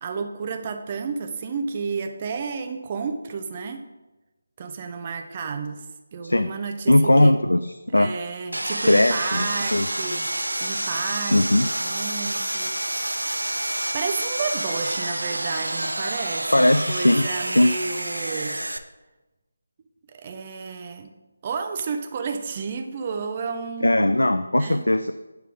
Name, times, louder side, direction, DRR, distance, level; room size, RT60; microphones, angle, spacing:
voice 1, 0.0-3.8 4.6-7.3 7.9-10.3 10.6-12.8 13.9-18.6 20.1-21.1 21.4-24.2 24.6-24.9, right 5 dB, 30° right, 5 dB, 0.6 m, -31 dB
voice 2, 6.9-8.1 8.8-9.5 9.7-9.9 11.3-11.7 16.5-17.7 23.8-25.1, left 1 dB, 80° left, 10 dB, 0.3 m, -19 dB
Sawing, 8.5-18.8, right 1 dB, 80° right, 0.5 m, -28 dB
8.8 x 3.4 x 4.9 m, 1.1 s
figure-of-eight pair, 155°, 0 cm